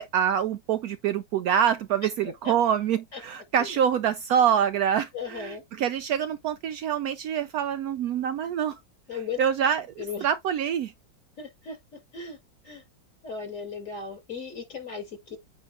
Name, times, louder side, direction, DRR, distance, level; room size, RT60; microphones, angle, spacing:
voice 1, 0.0-8.8 9.4-10.9, right 8 dB, 80° right, 0.8 m, -26 dB
voice 2, 5.1-5.6 9.1-9.4 10.0-10.3 11.4-11.8 12.1-12.4 12.6-12.8 13.2-15.4, left 5 dB, 40° left, 4.9 m, -36 dB
8.8 x 3.1 x 3.6 m
omnidirectional pair, 2.1 m